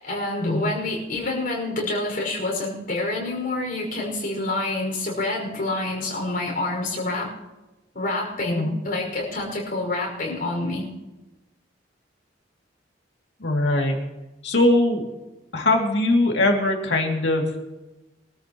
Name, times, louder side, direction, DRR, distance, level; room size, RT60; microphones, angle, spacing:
voice 1, 0.0-7.3 7.9-10.9, left 2 dB, 50° left, -1 dB, 5.7 m, -27 dB
voice 2, 13.4-14.0 14.4-15.0 15.5-17.6, left 2 dB, 70° left, 1 dB, 2.6 m, -21 dB
24.0 x 13.5 x 3.1 m, 1.0 s
head